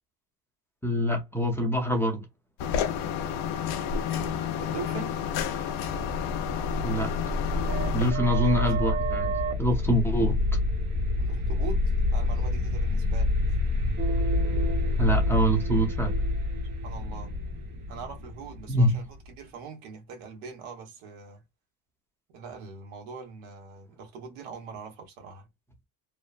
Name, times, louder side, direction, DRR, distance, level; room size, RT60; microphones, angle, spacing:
voice 1, 0.8-2.2 6.8-7.1 7.9-9.3 9.6-10.4 15.0-16.2 18.7-19.0, equal, 5° left, 0.7 m, -25 dB
sound 1, 2.6-8.1, left 7 dB, 70° left, 0.7 m, -30 dB
voice 2, 3.8-5.2 8.2-8.7 11.2-11.8 12.1-13.3 16.8-17.3 17.9-21.4 22.3-25.5, right 5 dB, 85° right, 1.2 m, -42 dB
sound 2, 5.7-19.3, left 2 dB, 60° right, 1.0 m, -28 dB
3.0 x 2.1 x 2.4 m
cardioid pair, 120°, 47 cm